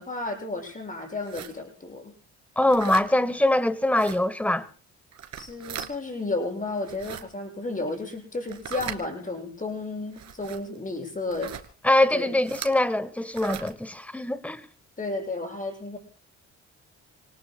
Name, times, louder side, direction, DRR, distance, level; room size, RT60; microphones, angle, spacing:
voice 1, 0.0-2.1 5.4-11.5 12.1-12.4 15.0-16.0, left 2 dB, 25° left, 7.7 m, -32 dB
sound 1, 1.2-1.5 2.7-3.1 3.9-4.2 5.1-5.9 6.8-7.2 8.5-9.0 10.1-10.6 11.3-11.7 12.4-12.7 13.3-13.7, right 9 dB, 60° right, 2.4 m, -38 dB
voice 2, 2.6-4.7 11.8-14.6, left 1 dB, 5° left, 1.3 m, -23 dB
29.5 x 19.0 x 2.3 m
cardioid pair, 90°, 30 cm